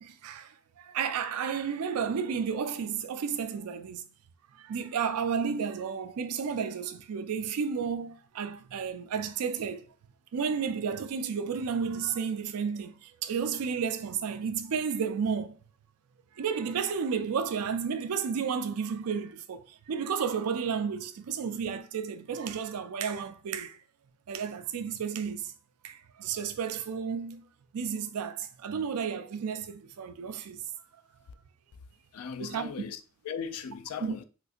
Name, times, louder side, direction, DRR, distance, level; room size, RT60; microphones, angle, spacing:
voice 1, 0.0-4.1 4.5-9.9 10.3-15.6 16.4-23.8 24.3-25.5 25.8-27.4 27.7-30.6 32.4-32.7 34.0-34.1, right 6 dB, 85° right, 0.4 m, -32 dB
voice 2, 32.1-34.2, left 6 dB, 75° left, 0.4 m, -38 dB
3.9 x 2.5 x 2.4 m
head